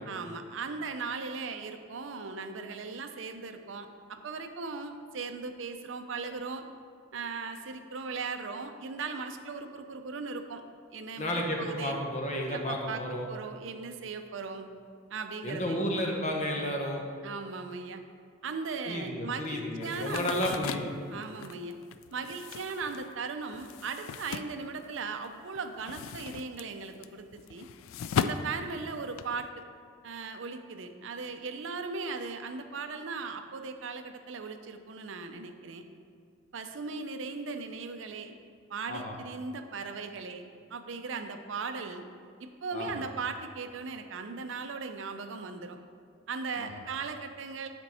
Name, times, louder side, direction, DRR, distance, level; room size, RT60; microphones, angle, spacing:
voice 1, 0.1-6.7 7.1-10.6 10.9-12.0 12.5-13.0 13.3-14.7 15.1-15.8 17.2-18.0 18.4-20.4 21.1-21.8 22.1-27.7 28.2-29.6 30.0-35.8 36.5-38.3 38.7-40.4 40.7-42.0 42.4-45.8 46.3-47.7, right 4 dB, 65° right, 7 dB, 0.5 m, -38 dB
voice 2, 11.2-13.3 15.4-17.0 18.8-20.9 38.9-39.1 42.7-42.9 46.6-46.7, left 1 dB, 35° left, 1 dB, 0.9 m, -32 dB
sound 1, 19.8-25.3 25.6-29.5, left 7 dB, 85° left, 0.3 m, -37 dB
8.8 x 4.4 x 4.2 m, 2.3 s
head